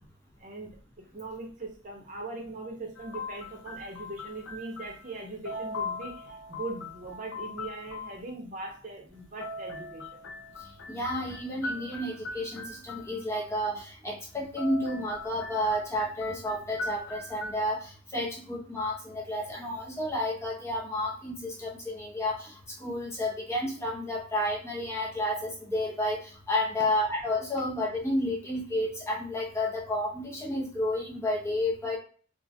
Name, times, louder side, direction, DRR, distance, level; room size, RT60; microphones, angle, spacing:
voice 1, 0.4-0.8 1.1-10.2, right 2 dB, 40° right, 1 dB, 0.7 m, -40 dB
sound 1, 3.0-5.2 5.5-8.2 9.2-13.4 14.3-17.5, left 3 dB, 70° left, 0.5 m, -40 dB
voice 2, 10.9-22.5 22.8-32.0, left 1 dB, 15° left, -3 dB, 0.6 m, -31 dB
2.8 x 2.6 x 2.4 m, 0.42 s
head